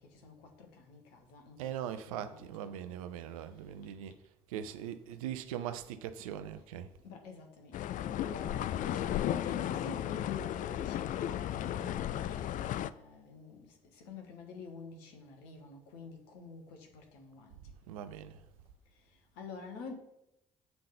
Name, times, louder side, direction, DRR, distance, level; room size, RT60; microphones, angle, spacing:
voice 1, 0.0-3.0 3.5-3.6 7.0-17.6 19.0-19.9, left 4 dB, 70° left, 1.3 m, -48 dB
voice 2, 1.6-4.2 4.5-6.9 17.9-18.4, right 10 dB, 75° right, 0.5 m, -40 dB
sound 1, 7.7-12.9, left 11 dB, 50° left, 0.4 m, -34 dB
8.0 x 3.7 x 5.0 m
figure-of-eight pair, 45°, 18 cm